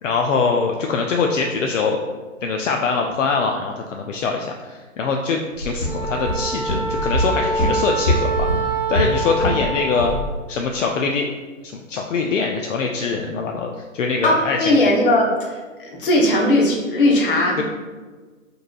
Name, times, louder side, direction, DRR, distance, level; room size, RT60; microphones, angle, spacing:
voice 1, 0.0-2.0 2.4-10.2 10.5-11.3 11.6-14.8 17.6-17.7, left 4 dB, 65° left, 2 dB, 0.5 m, -23 dB
sound 1, 5.6-9.7 10.0-10.3, equal, 85° left, 1.4 m, -24 dB
Wind instrument woodwind instrument, 5.8-10.2, right 2 dB, 5° right, 0.7 m, -26 dB
voice 2, 14.2-17.6, left 1 dB, 40° left, -2 dB, 0.8 m, -18 dB
4.8 x 3.1 x 2.3 m, 1.4 s
hypercardioid pair, 160°, 40 cm